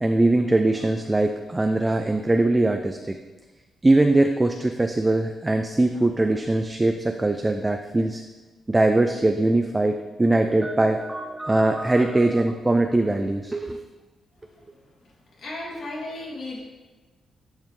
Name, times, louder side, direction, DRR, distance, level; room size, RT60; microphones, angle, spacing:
voice 1, 0.0-3.2 3.8-8.2 8.7-13.8, right 2 dB, 15° right, 5 dB, 0.4 m, -21 dB
voice 2, 11.6-12.1 12.3-12.4 14.4-14.7 15.4-16.6, left 2 dB, 60° left, -4 dB, 2.5 m, -36 dB
10.5 x 5.5 x 3.2 m, 1.2 s
cardioid pair, 115°, 0 cm